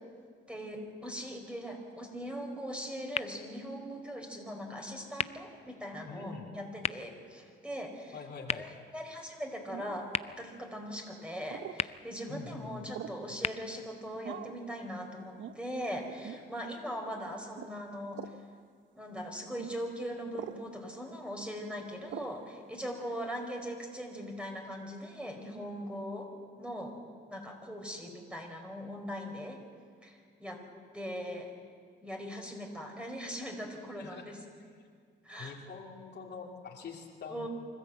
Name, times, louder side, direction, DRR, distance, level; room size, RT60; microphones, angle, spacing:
voice 1, 0.5-8.2 8.5-18.2 18.9-26.3 26.6-27.0 27.3-29.6 30.0-30.6 30.9-31.5 32.0-34.4 35.2-35.6 37.3-37.5, equal, 5° right, 2 dB, 4.7 m, -40 dB
sound 1, 3.1-15.0, left 7 dB, 30° left, 0.5 m, -42 dB
voice 2, 6.1-6.5 8.1-8.7 12.3-12.9 34.0-34.3 35.4-37.5, left 5 dB, 60° left, 0 dB, 2.8 m, -45 dB
sound 2, 9.7-10.1 11.5-11.8 12.9-13.3 14.2-14.6 15.4-15.6 16.2-16.4 17.5-17.7 18.1-18.4 19.6-19.7 20.3-20.6 22.1-22.4, right 10 dB, 75° right, 0.9 m, -43 dB
25.0 x 14.5 x 8.1 m, 2.1 s
cardioid pair, 90°, 20 cm